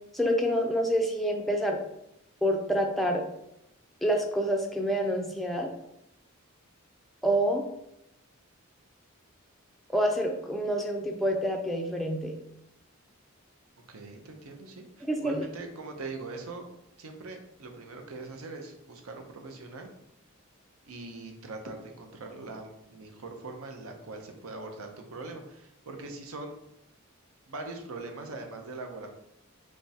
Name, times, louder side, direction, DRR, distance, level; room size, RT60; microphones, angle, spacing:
voice 1, 0.1-1.8 2.4-3.2 4.0-5.7 7.2-7.6 9.9-12.4 15.0-15.5, equal, ahead, 1 dB, 0.3 m, -27 dB
voice 2, 13.9-16.7 17.0-19.9 20.8-26.5 27.5-29.1, right 3 dB, 85° right, 4 dB, 0.6 m, -42 dB
3.5 x 3.1 x 2.7 m, 0.81 s
head